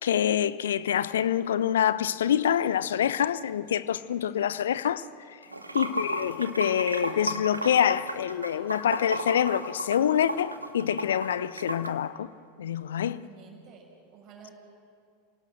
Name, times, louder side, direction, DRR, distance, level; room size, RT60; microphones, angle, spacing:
voice 1, 0.0-5.4 5.7-12.3 12.6-13.3, left 9 dB, 65° left, 0.5 m, -26 dB
voice 2, 5.4-5.8 12.9-14.5, right 6 dB, 40° right, 6.1 m, -52 dB
Water / Sink (filling or washing), 5.4-11.9, right 1 dB, 85° right, 1.4 m, -33 dB
27.5 x 18.0 x 7.8 m
figure-of-eight pair, 85°, 0 cm